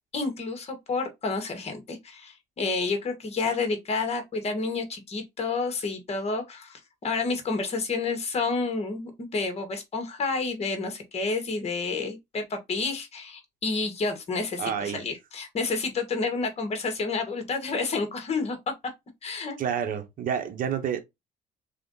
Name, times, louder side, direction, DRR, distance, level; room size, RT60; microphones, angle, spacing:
voice 1, 0.1-18.6 19.2-19.6, left 4 dB, 40° left, 1.7 m, -30 dB
voice 2, 14.6-15.0 19.6-21.0, right 8 dB, 55° right, 1.1 m, -29 dB
3.8 x 3.4 x 3.9 m
cardioid pair, 110°, 17 cm